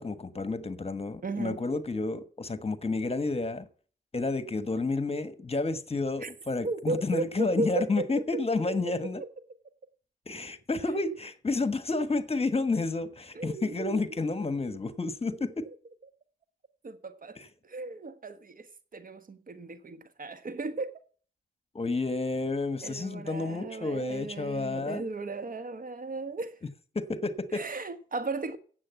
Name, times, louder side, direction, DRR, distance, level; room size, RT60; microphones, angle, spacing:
voice 1, 0.0-3.7 4.1-9.2 10.3-15.7 17.4-17.5 21.7-25.0 26.9-27.6, left 3 dB, 35° left, 1.3 m, -30 dB
voice 2, 1.2-1.6 6.2-6.3 6.6-9.3 13.3-14.0 16.8-20.9 22.8-26.6 27.5-28.6, right 2 dB, 50° right, 1.4 m, -36 dB
8.5 x 7.7 x 8.1 m
supercardioid pair, 45°, 18 cm